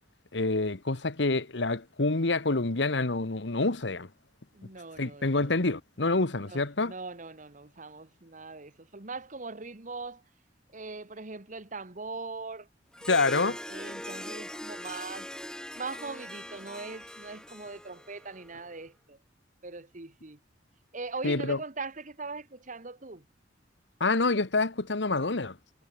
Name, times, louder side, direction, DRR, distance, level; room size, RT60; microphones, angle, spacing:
voice 1, 0.3-4.1 5.0-6.9 13.1-13.6 21.2-21.6 24.0-25.6, left 3 dB, 75° left, 1.4 m, -27 dB
voice 2, 4.5-5.5 6.4-10.2 10.7-12.7 13.7-15.3 15.7-19.2 19.6-20.4 20.9-23.2, right 3 dB, 45° right, 1.7 m, -41 dB
Harp, 12.9-18.7, left 1 dB, 5° left, 3.0 m, -41 dB
head